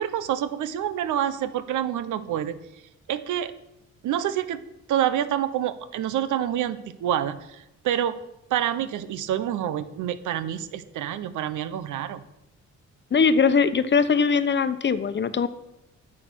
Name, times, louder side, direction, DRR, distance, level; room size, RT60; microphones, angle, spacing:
voice 1, 0.0-2.5 3.1-3.5 4.0-4.6 4.9-8.2 8.5-12.2, right 10 dB, 80° right, 12 dB, 1.0 m, -27 dB
voice 2, 13.1-15.5, left 5 dB, 35° left, 13 dB, 0.9 m, -21 dB
9.6 x 8.9 x 6.4 m, 0.89 s
cardioid pair, 90°, 30 cm